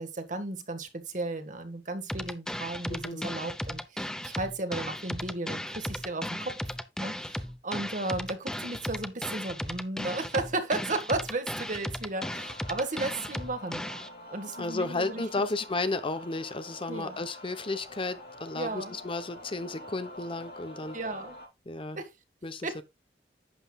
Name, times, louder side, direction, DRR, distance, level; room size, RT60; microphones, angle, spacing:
voice 1, 0.0-6.5 7.0-13.8 14.3-15.4 16.9-17.2 18.5-19.0 20.9-21.4 22.0-22.1 22.6-22.8, right 2 dB, 45° right, 1.8 m, -34 dB
sound 1, 2.1-14.1, equal, 5° left, 0.8 m, -36 dB
voice 2, 2.9-3.3 14.6-21.0 21.7-22.0 22.4-22.8, left 2 dB, 30° left, 0.9 m, -33 dB
sound 2, 12.1-21.5, left 1 dB, 65° left, 3.1 m, -47 dB
11.0 x 7.9 x 2.4 m
head